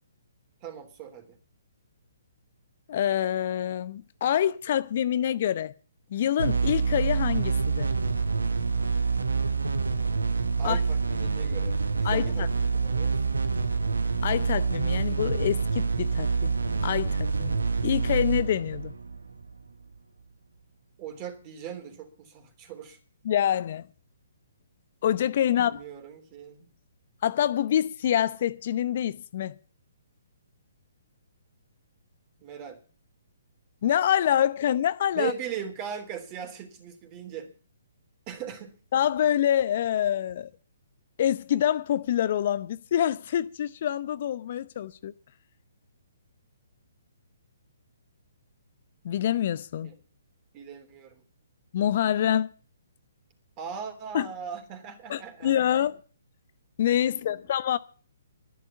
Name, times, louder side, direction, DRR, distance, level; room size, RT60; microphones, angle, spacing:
voice 1, 0.6-1.4 10.6-13.2 15.0-15.1 21.0-23.0 25.5-26.7 32.4-32.8 35.1-37.5 38.3-38.8 49.8-49.9 50.5-51.2 53.6-55.7 57.1-57.4, right 8 dB, 30° right, 3.3 m, -39 dB
voice 2, 2.9-5.7 6.1-7.9 10.6-10.8 12.0-12.5 14.2-16.5 16.8-17.6 17.8-18.9 23.2-23.8 25.0-25.8 27.2-29.6 33.8-35.3 38.9-40.5 41.2-45.1 49.0-49.9 51.7-52.5 54.1-54.3 55.1-56.0 56.8-57.8, left 10 dB, 50° left, 0.7 m, -26 dB
sound 1, 6.4-19.7, right 5 dB, 80° right, 1.2 m, -27 dB
12.0 x 11.0 x 7.0 m
figure-of-eight pair, 130°, 0 cm